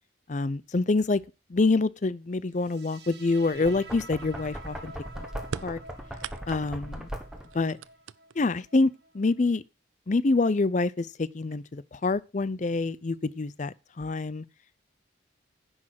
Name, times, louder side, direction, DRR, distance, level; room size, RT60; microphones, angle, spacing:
voice 1, 0.3-1.2 1.5-5.2 5.6-5.8 6.5-7.1 7.5-7.8 8.4-9.6 10.1-14.4, left 3 dB, 40° left, 0.5 m, -26 dB
sound 1, 2.5-9.6, right 2 dB, 55° right, 1.5 m, -49 dB
Knock, 3.5-7.6, equal, 5° right, 1.2 m, -39 dB
sound 2, 5.5-6.9 7.4-8.6 9.6-9.7 10.7-10.8 11.3-11.8, right 6 dB, 90° right, 0.5 m, -40 dB
10.0 x 6.3 x 6.3 m
head